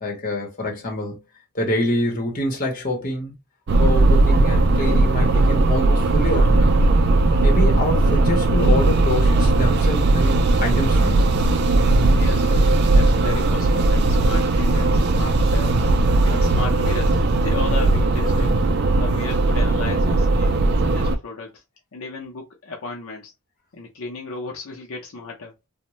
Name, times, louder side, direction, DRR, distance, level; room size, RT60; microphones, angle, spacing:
voice 1, 0.0-1.2 1.5-3.3 3.8-6.8 7.4-11.3 18.3-18.7, left 1 dB, 40° left, 0.9 m, -26 dB
sound 1, 3.7-21.2, right 2 dB, 50° right, 0.3 m, -18 dB
voice 2, 12.1-15.9 16.2-21.6 21.9-23.3 23.7-25.5, left 3 dB, 70° left, 0.6 m, -34 dB
2.5 x 2.1 x 3.0 m
head